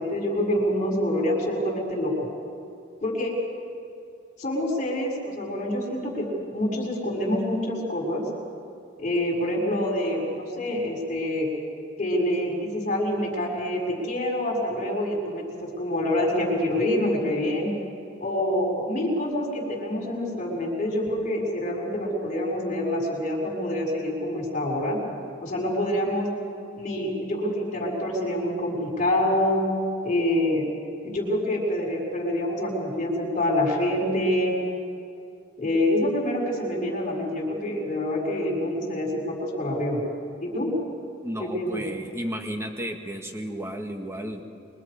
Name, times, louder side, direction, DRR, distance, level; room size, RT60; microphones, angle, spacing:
voice 1, 0.0-2.3 3.0-3.3 4.4-8.2 9.0-11.5 12.0-17.7 18.2-25.0 25.4-26.3 26.8-29.6 30.0-30.7 31.0-34.5 35.6-40.0 40.4-40.7 41.4-41.8, left 1 dB, 40° left, -2 dB, 5.9 m, -26 dB
voice 2, 41.2-44.4, equal, 15° right, 4 dB, 1.7 m, -33 dB
26.0 x 23.5 x 5.1 m, 2.5 s
head